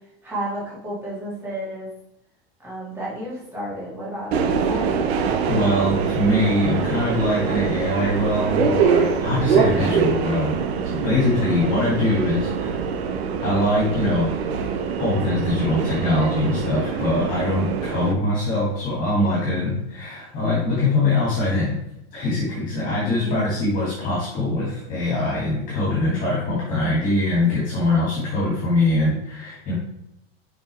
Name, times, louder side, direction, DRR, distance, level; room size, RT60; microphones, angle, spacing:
voice 1, 0.2-1.9 2.6-4.9 22.7-23.4, equal, 5° right, -8 dB, 2.3 m, -32 dB
Subway metro underground, 4.3-18.1, right 6 dB, 85° right, 1.0 m, -24 dB
voice 2, 5.5-10.6 10.8-12.8 13.4-14.3 15.0-21.8 22.1-29.7, left 1 dB, 25° left, -6 dB, 2.7 m, -22 dB
6.6 x 5.4 x 3.5 m, 0.83 s
supercardioid pair, 160°, 31 cm